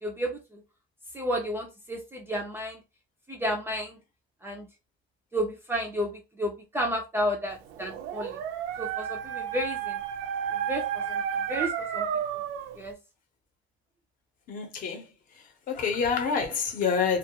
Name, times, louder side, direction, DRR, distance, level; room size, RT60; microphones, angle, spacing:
voice 1, 0.0-0.6 1.1-2.8 3.3-4.0 4.4-4.7 5.3-8.4 8.8-10.0 10.5-11.2 11.5-12.1 12.8-12.9, equal, 10° right, 0.3 m, -32 dB
Dog, 7.7-12.8, right 8 dB, 75° right, 0.4 m, -32 dB
voice 2, 14.5-15.0 15.7-17.2, left 6 dB, 45° left, 0.7 m, -27 dB
2.2 x 2.2 x 2.7 m
cardioid pair, 150°, 20 cm